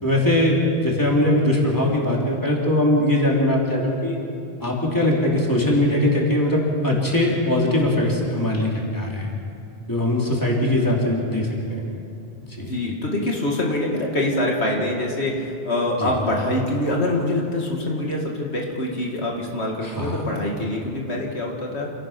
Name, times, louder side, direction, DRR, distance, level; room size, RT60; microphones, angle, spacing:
voice 1, 0.0-4.2 4.6-9.3 9.9-11.9 12.4-12.7 16.0-16.1 19.8-20.3, left 1 dB, 20° left, -3 dB, 3.6 m, -21 dB
voice 2, 12.6-21.9, left 1 dB, 80° left, -1 dB, 2.4 m, -25 dB
28.0 x 17.0 x 6.0 m, 2.6 s
omnidirectional pair, 1.1 m